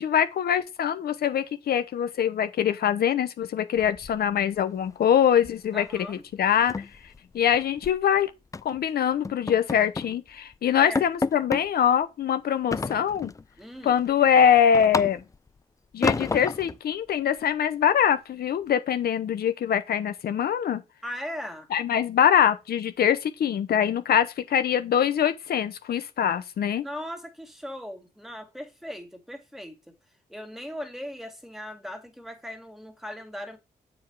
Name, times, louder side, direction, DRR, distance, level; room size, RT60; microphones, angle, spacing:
voice 1, 0.0-6.7 7.3-8.3 8.6-13.3 13.8-15.2 15.9-20.8 21.7-26.8, left 9 dB, 80° left, 0.8 m, -23 dB
sound 1, 3.8-4.6 4.9-5.1 5.4-5.7 5.9-6.0 6.4-8.0 8.5-8.8 9.2-10.2 10.5-10.6 10.9-11.7 12.7-13.4 13.9-15.5 16.0-16.8, left 4 dB, 20° left, 0.4 m, -30 dB
voice 2, 5.7-6.2 10.8-11.0 13.6-14.0 21.0-21.7 26.8-29.8 30.3-33.6, equal, ahead, 2.0 m, -38 dB
7.2 x 5.1 x 4.6 m
cardioid pair, 85°, 16 cm